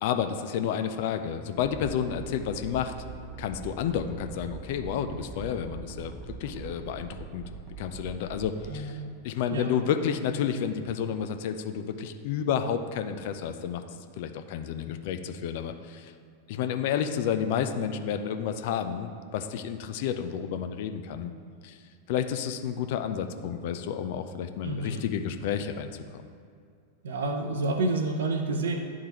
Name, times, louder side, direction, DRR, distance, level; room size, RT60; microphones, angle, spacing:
voice 1, 0.0-2.9 3.4-6.1 6.4-7.4 7.8-13.8 14.2-16.1 16.5-21.3 21.6-21.8 22.1-26.2, left 8 dB, 50° left, 7 dB, 0.4 m, -30 dB
sound 1, 1.6-8.7, right 5 dB, 25° right, 1.1 m, -42 dB
voice 2, 8.7-9.1 9.5-9.9 24.6-25.0 27.0-28.8, right 2 dB, 60° right, 5 dB, 0.6 m, -29 dB
11.0 x 3.6 x 3.0 m, 2.2 s
figure-of-eight pair, 90°, 0 cm